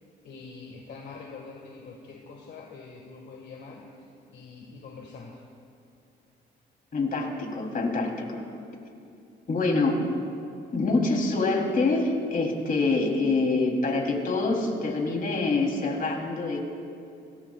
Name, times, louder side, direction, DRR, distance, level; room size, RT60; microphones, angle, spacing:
voice 1, 0.2-5.4, left 4 dB, 60° left, -1 dB, 1.8 m, -44 dB
voice 2, 6.9-8.4 9.5-10.0 10.7-16.6, left 3 dB, 45° left, 1 dB, 3.3 m, -25 dB
25.5 x 18.0 x 2.4 m, 2.5 s
cardioid pair, 90°, 20 cm